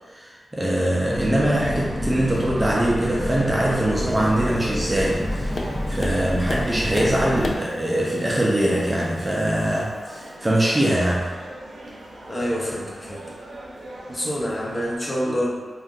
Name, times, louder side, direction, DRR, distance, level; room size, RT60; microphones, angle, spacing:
voice 1, 0.1-11.3, right 1 dB, 20° right, -5 dB, 0.4 m, -23 dB
sound 1, 1.0-7.6, equal, 40° left, 1.4 m, -28 dB
sound 2, 3.1-15.0, right 1 dB, 85° right, 0.5 m, -41 dB
Tap, 4.1-10.3, left 2 dB, 60° left, 0.3 m, -37 dB
voice 2, 12.3-13.2 14.1-15.5, equal, 25° left, -5 dB, 0.7 m, -26 dB
2.6 x 2.4 x 3.6 m, 1.5 s
wide cardioid pair, 110°, 0 cm